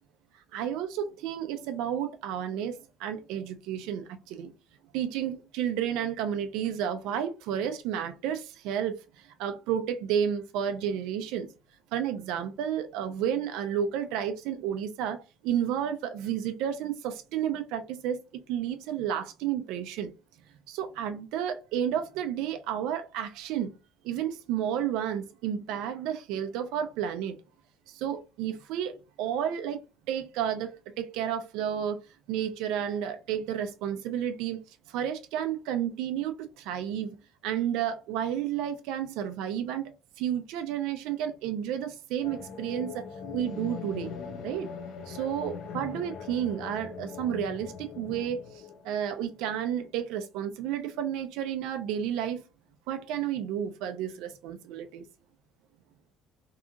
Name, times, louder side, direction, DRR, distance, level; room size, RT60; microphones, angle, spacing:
voice 1, 0.5-4.5 4.9-11.5 11.9-20.1 20.7-23.7 24.0-27.4 27.9-29.8 30.1-32.0 32.3-34.6 34.9-37.2 37.4-39.9 40.2-43.0 43.3-44.1 44.4-44.7 45.1-52.4 52.9-55.0, right 9 dB, 85° right, 0.4 m, -31 dB
sound 1, 42.2-50.2, left 6 dB, 55° left, 0.4 m, -41 dB
2.7 x 2.4 x 2.4 m
cardioid pair, 150°, 0 cm